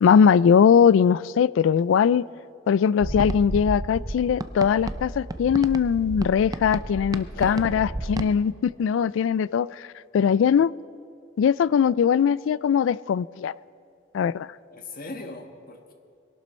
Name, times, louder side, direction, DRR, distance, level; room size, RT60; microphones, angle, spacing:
voice 1, 0.0-2.2 2.7-9.9 10.1-10.7 11.4-13.6 14.1-14.5, left 7 dB, 75° left, 0.3 m, -20 dB
sound 1, 3.0-8.3, right 1 dB, 20° right, 0.5 m, -32 dB
voice 2, 7.3-7.8 14.7-15.9, left 2 dB, 50° left, 1.4 m, -39 dB
22.0 x 11.5 x 4.3 m
head